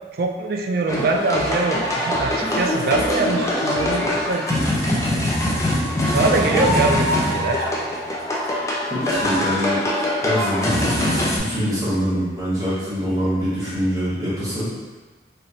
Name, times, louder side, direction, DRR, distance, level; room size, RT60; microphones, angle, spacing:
voice 1, 0.1-5.1 6.1-7.7, right 3 dB, 55° right, 2 dB, 0.3 m, -23 dB
sound 1, 0.9-11.4, left 1 dB, 15° left, 0.4 m, -22 dB
voice 2, 8.9-9.8 10.2-14.7, equal, 20° right, -11 dB, 1.0 m, -24 dB
3.0 x 2.9 x 2.8 m, 1.3 s
head